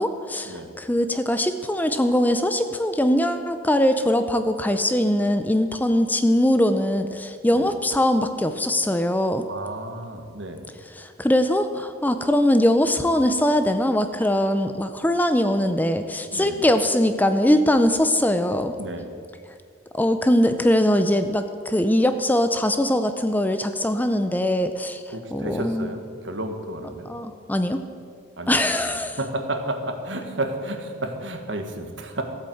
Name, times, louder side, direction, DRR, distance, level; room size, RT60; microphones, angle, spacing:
voice 1, 0.0-9.5 11.0-18.7 19.9-25.0 25.3-25.9 27.0-27.8 28.5-29.2, left 1 dB, 10° left, 9 dB, 0.5 m, -21 dB
voice 2, 9.5-10.6 16.3-16.6 18.8-19.1 25.1-27.1 28.4-28.6 28.9-32.2, right 2 dB, 70° right, 5 dB, 1.6 m, -32 dB
15.0 x 8.5 x 7.9 m, 2.2 s
head